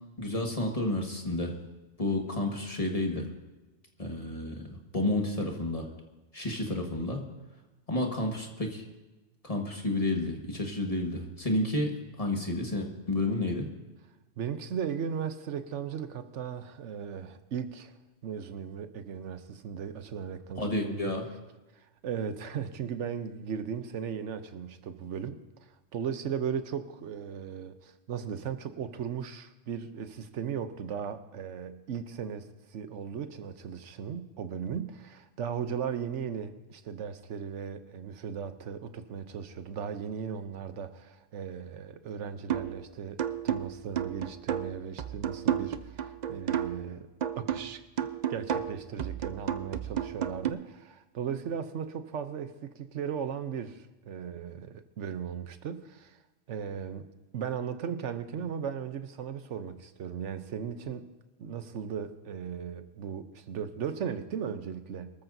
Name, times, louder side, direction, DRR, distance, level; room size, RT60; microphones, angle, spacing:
voice 1, 0.2-1.5 2.0-3.3 4.0-5.9 6.3-7.2 7.9-8.8 9.4-13.7 20.6-21.3, left 1 dB, 30° left, 1 dB, 1.7 m, -31 dB
voice 2, 14.4-17.9 18.2-21.1 21.7-47.1 47.4-47.8 48.3-56.2 56.5-57.1 57.3-61.1 61.4-65.1, right 7 dB, 90° right, 10 dB, 1.1 m, -37 dB
sound 1, 42.5-42.8 43.2-46.9 47.2-50.5, right 9 dB, 50° right, 0.5 m, -32 dB
24.0 x 13.5 x 2.7 m, 1.1 s
omnidirectional pair, 1.2 m